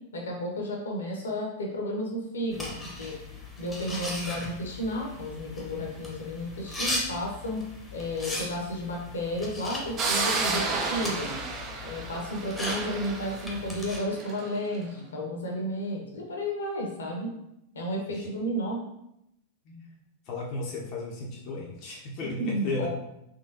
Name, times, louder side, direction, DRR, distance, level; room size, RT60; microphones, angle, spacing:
voice 1, 0.1-3.2 3.6-7.6 7.9-11.4 11.8-17.3 17.7-18.8 22.2-22.9, equal, 70° left, 0 dB, 0.8 m, -32 dB
sound 1, 2.5-14.0, left 2 dB, 5° left, 0.9 m, -38 dB
Mechanical saw, 10.0-14.4, right 3 dB, 30° right, 0.6 m, -31 dB
voice 2, 20.3-22.9, left 2 dB, 40° left, -3 dB, 0.6 m, -35 dB
3.8 x 3.1 x 2.8 m, 0.81 s
figure-of-eight pair, 90°, 0 cm